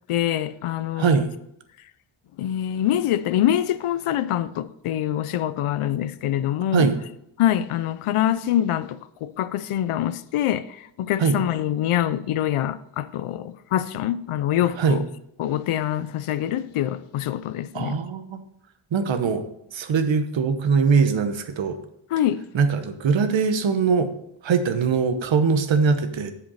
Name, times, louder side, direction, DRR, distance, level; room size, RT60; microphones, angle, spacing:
voice 1, 0.1-1.3 2.4-6.9 7.4-15.0 15.4-18.0 22.1-22.4, left 11 dB, 85° left, 0.6 m, -25 dB
voice 2, 1.0-1.3 6.7-7.0 11.2-11.4 14.8-15.0 17.7-18.4 18.9-19.4 19.7-21.8 22.5-24.1 24.4-26.3, right 5 dB, 65° right, 1.0 m, -21 dB
7.3 x 5.2 x 5.5 m
wide cardioid pair, 100°, 49 cm